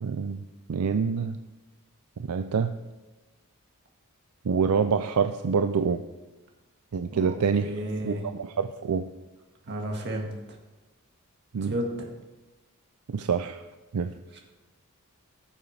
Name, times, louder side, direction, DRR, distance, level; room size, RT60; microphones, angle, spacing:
voice 1, 0.0-0.4 0.7-1.4 2.2-2.7 4.4-6.0 6.9-7.7 8.0-9.0 11.5-11.7 13.1-13.6 13.9-14.1, right 6 dB, 80° right, 8 dB, 0.5 m, -26 dB
voice 2, 7.1-8.2 9.7-10.3 11.6-11.9 14.3-14.4, right 1 dB, 50° right, 1 dB, 1.8 m, -32 dB
19.0 x 7.2 x 3.3 m, 1.1 s
head